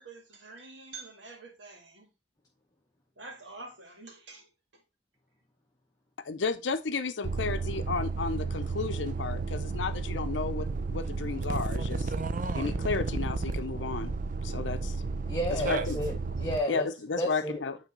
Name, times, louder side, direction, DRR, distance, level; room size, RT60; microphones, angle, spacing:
voice 1, 0.0-2.1 3.2-4.5, right 3 dB, 75° right, 2.0 m, -47 dB
voice 2, 6.2-12.1 12.5-14.1 14.4-15.0 15.6-16.0 16.7-17.8, left 4 dB, 75° left, 0.6 m, -33 dB
sound 1, 7.2-16.6, right 3 dB, 45° right, 0.6 m, -32 dB
voice 3, 15.3-16.9 17.2-17.6, equal, 20° left, 0.9 m, -31 dB
9.0 x 3.4 x 3.8 m
head